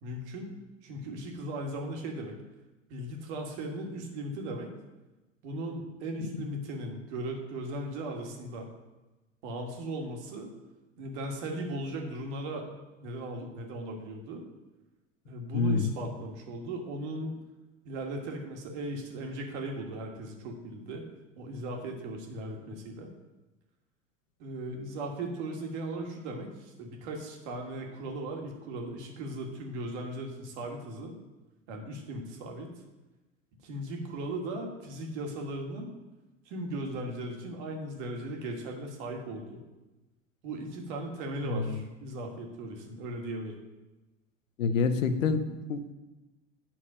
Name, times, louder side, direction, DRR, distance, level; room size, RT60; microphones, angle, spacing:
voice 1, 0.0-0.5 0.8-2.4 2.9-4.7 5.4-8.7 9.4-10.5 11.0-12.7 13.0-14.5 15.3-17.3 17.9-21.0 21.4-23.1 24.4-31.2 31.7-32.7 33.6-35.9 36.5-39.6 40.4-43.6, right 1 dB, 60° right, 2 dB, 1.9 m, -37 dB
voice 2, 15.5-15.9 41.4-41.8 44.6-45.9, left 4 dB, 80° left, 9 dB, 0.9 m, -27 dB
9.2 x 5.9 x 5.1 m, 1.1 s
hypercardioid pair, 80°, 38 cm